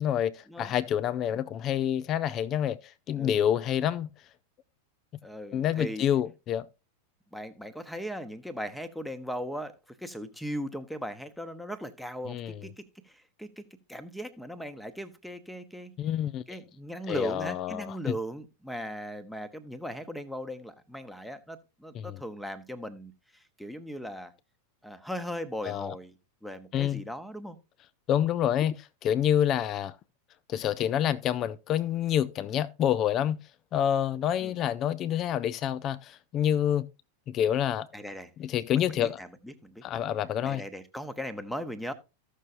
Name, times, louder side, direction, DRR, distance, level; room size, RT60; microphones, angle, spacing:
voice 1, 0.0-4.1 5.5-6.7 12.3-12.6 16.0-16.4 17.1-18.2 21.9-22.2 25.6-25.9 26.7-27.0 28.1-30.0 30.5-33.4 33.7-36.9 37.3-37.9 38.4-39.2 39.8-40.6, left 10 dB, 30° left, 0.5 m, -28 dB
voice 2, 5.2-6.1 7.3-13.6 13.9-15.9 16.5-24.3 24.8-26.1 26.4-27.6 34.4-34.6 37.9-38.3 38.7-39.8 40.4-41.9, equal, ahead, 1.0 m, -38 dB
15.0 x 6.6 x 2.6 m
figure-of-eight pair, 90°, 0 cm